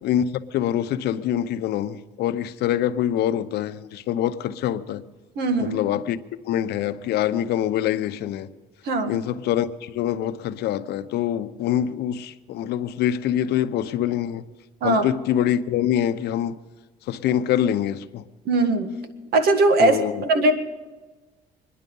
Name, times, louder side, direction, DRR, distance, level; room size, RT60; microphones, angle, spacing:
voice 1, 0.0-5.0 5.6-6.2 6.5-8.5 9.1-14.4 14.8-16.6 17.1-18.2 19.8-20.2, left 11 dB, 75° left, 0.7 m, -25 dB
voice 2, 5.3-5.8 8.8-9.2 14.8-15.1 18.4-18.9 19.3-20.0 20.3-20.5, right 2 dB, 70° right, 1.8 m, -19 dB
25.0 x 10.5 x 5.4 m
cardioid pair, 110°, 17 cm